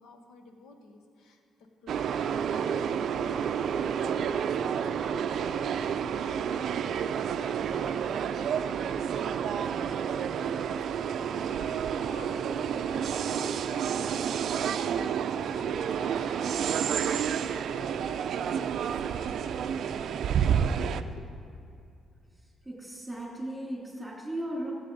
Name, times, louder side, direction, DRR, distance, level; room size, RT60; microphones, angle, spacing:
voice 1, 0.0-19.8 20.4-21.3, left 3 dB, 85° left, 5 dB, 1.1 m, -50 dB
sound 1, 1.9-21.0, right 8 dB, 65° right, 0.4 m, -30 dB
voice 2, 22.6-24.7, right 1 dB, 5° right, -3 dB, 2.7 m, -36 dB
14.0 x 7.5 x 4.0 m, 2.5 s
cardioid pair, 90°, 0 cm